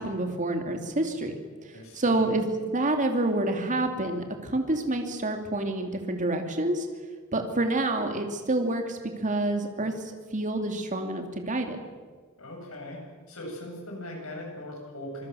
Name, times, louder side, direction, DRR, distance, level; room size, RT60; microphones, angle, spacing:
voice 1, 0.0-1.3 1.9-6.9 7.3-10.0 10.3-11.8, right 2 dB, 35° right, 5 dB, 2.8 m, -28 dB
voice 2, 1.7-2.3 12.4-13.0 13.3-15.3, left 1 dB, 65° left, 1 dB, 7.8 m, -40 dB
26.0 x 21.0 x 7.1 m, 1.5 s
head